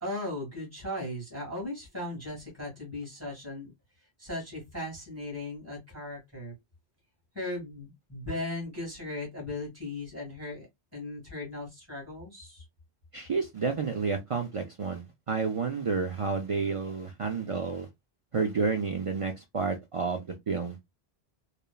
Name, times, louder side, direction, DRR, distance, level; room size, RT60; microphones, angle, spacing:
voice 1, 0.0-3.7 4.2-6.5 7.3-10.7 10.9-12.6, left 1 dB, 15° right, 1.6 m, -37 dB
voice 2, 13.1-17.9 18.3-20.8, right 5 dB, 55° right, 0.3 m, -30 dB
3.1 x 2.0 x 2.2 m
omnidirectional pair, 1.1 m